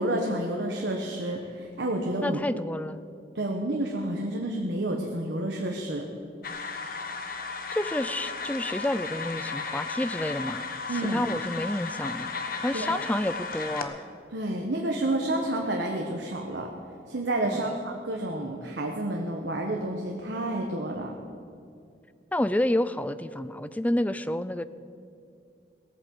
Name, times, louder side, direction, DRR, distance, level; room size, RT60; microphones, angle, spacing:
voice 1, 0.0-1.4 1.8-2.4 3.3-6.1 10.9-11.2 12.7-13.0 14.3-16.7 17.1-21.2, right 1 dB, 85° right, 1 dB, 1.3 m, -29 dB
voice 2, 2.2-3.0 7.7-14.0 17.4-17.7 22.3-24.7, left 1 dB, 10° left, 14 dB, 0.4 m, -29 dB
sound 1, 6.4-13.8, left 4 dB, 50° left, 1.1 m, -35 dB
18.0 x 8.7 x 7.8 m, 2.5 s
head